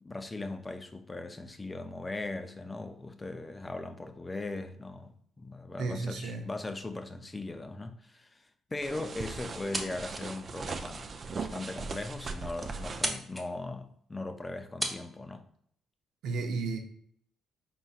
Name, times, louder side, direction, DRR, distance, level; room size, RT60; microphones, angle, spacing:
voice 1, 0.0-15.4, left 2 dB, 20° left, 7 dB, 0.5 m, -39 dB
voice 2, 5.8-6.5 16.2-16.8, right 4 dB, 85° right, 4 dB, 0.7 m, -33 dB
sound 1, 8.8-13.1, right 4 dB, 45° right, 0.4 m, -39 dB
sound 2, 9.7-10.4 10.8-10.9 11.6-11.7 11.9-12.0 12.2-12.6 12.9-13.5 14.4-14.5 14.8-15.0, equal, 5° right, 0.8 m, -35 dB
4.0 x 3.9 x 2.4 m, 0.65 s
cardioid pair, 90°, 0 cm